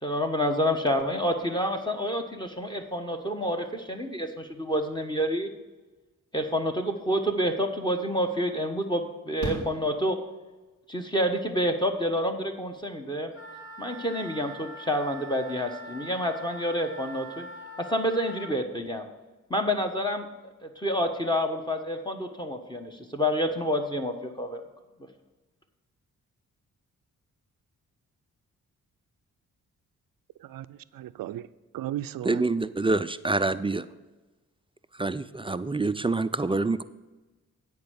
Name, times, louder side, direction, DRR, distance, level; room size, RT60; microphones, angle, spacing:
voice 1, 0.0-5.5 6.3-10.2 10.9-13.3 13.8-17.5 17.8-19.0 19.5-20.3 20.6-24.6, equal, 10° left, 5 dB, 1.3 m, -28 dB
Fireworks, 9.4-10.7 12.5-12.6 12.8-12.9, equal, 70° left, 3.8 m, -37 dB
Wind instrument woodwind instrument, 13.3-18.5, right 1 dB, 35° left, 2.1 m, -43 dB
voice 2, 30.4-32.4, right 13 dB, 65° right, 15 dB, 0.5 m, -36 dB
voice 3, 32.3-33.8 35.0-36.8, right 3 dB, 15° right, 13 dB, 0.4 m, -26 dB
9.5 x 4.7 x 7.8 m, 1.2 s
supercardioid pair, 45°, 36 cm